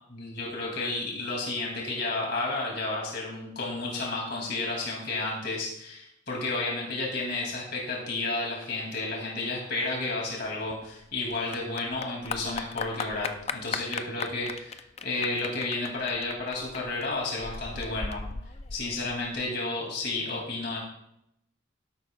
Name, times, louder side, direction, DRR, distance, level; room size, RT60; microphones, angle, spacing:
voice 1, 0.1-18.2 18.7-20.8, left 2 dB, 55° left, -2 dB, 2.6 m, -32 dB
Clapping / Applause, 10.4-19.4, left 4 dB, 30° left, 0.5 m, -38 dB
12.5 x 11.5 x 2.3 m, 0.77 s
head